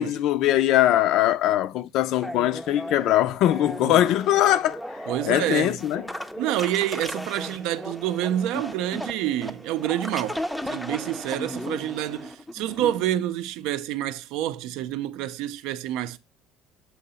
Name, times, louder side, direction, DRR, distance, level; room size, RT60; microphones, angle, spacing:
voice 1, 0.0-4.8 5.2-6.0, left 13 dB, 60° left, 0.4 m, -21 dB
sound 1, 2.2-13.0, equal, ahead, 0.5 m, -35 dB
voice 2, 5.1-5.8 6.4-16.2, right 12 dB, 75° right, 0.5 m, -28 dB
7.7 x 2.8 x 5.4 m
cardioid pair, 150°, 0 cm